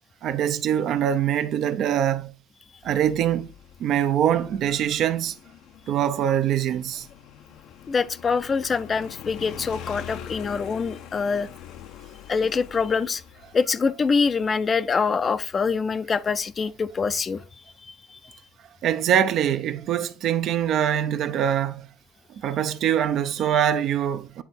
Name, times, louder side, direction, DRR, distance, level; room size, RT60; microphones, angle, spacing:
voice 1, 0.2-2.4 2.8-3.5 3.8-5.4 5.9-7.1 18.8-21.9 22.3-24.4, right 10 dB, 65° right, 0.6 m, -23 dB
Motorcycle, 2.8-17.1, left 10 dB, 75° left, 0.6 m, -44 dB
voice 2, 7.9-11.5 12.3-13.2 13.5-17.4 17.9-18.2 23.5-23.6, left 5 dB, 35° left, 0.4 m, -25 dB
9.3 x 3.4 x 4.2 m
supercardioid pair, 90°, 0 cm